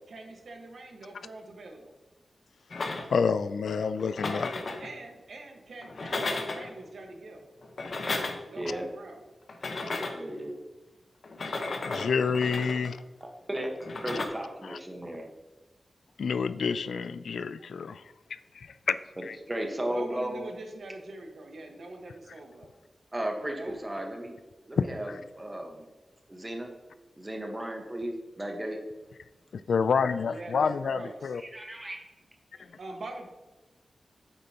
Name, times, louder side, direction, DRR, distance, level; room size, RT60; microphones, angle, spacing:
voice 1, 0.1-1.9 4.8-7.4 8.4-9.2 19.8-22.7 23.5-23.8 30.3-31.3 32.8-33.3, right 2 dB, 65° right, 3 dB, 1.4 m, -43 dB
sound 1, 2.7-3.4 4.0-4.9 5.8-6.7 7.6-8.6 9.5-10.3 11.2-13.0 13.8-14.3, left 3 dB, 55° left, 1.0 m, -34 dB
voice 2, 3.1-4.5 11.8-13.0 14.6-14.8 16.2-18.0 18.6-19.0 19.2-19.4 24.8-25.2 29.7-31.4, left 5 dB, 90° left, 14 dB, 0.3 m, -28 dB
voice 3, 8.2-8.9 10.1-10.5 13.2-15.2 19.2-20.5 23.1-24.4 24.7-25.9 26.3-26.7 27.2-28.8 31.4-32.0 32.5-32.7, right 1 dB, 15° right, 2 dB, 1.2 m, -35 dB
8.8 x 7.7 x 2.9 m, 1.1 s
wide cardioid pair, 120°, 0 cm